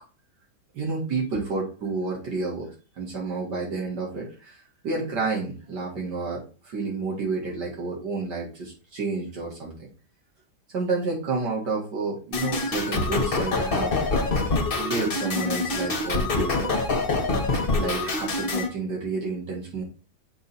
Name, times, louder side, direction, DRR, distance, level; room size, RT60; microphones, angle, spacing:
voice 1, 0.7-2.7 3.0-4.6 4.8-9.9 10.7-13.9 14.8-16.8 17.8-19.8, right 3 dB, 80° right, -3 dB, 2.6 m, -30 dB
sound 1, 12.3-18.7, left 3 dB, 35° left, 1.4 m, -25 dB
7.5 x 3.3 x 4.2 m, 0.35 s
omnidirectional pair, 1.8 m